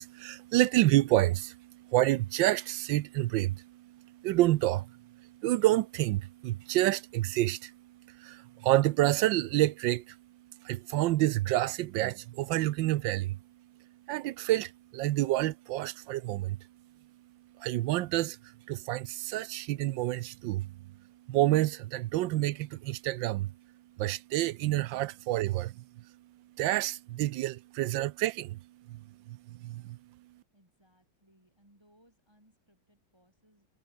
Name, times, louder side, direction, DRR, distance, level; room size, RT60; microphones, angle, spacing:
voice 1, 0.0-10.2 10.6-13.4 14.1-16.6 17.6-18.4 18.7-20.7 21.3-23.5 24.0-25.8 26.6-28.6 28.9-29.0 29.3-30.0, right 16 dB, 80° right, 1.3 m, -28 dB
voice 2, 30.5-33.7, equal, 10° right, 7.1 m, -66 dB
omnidirectional pair, 2.1 m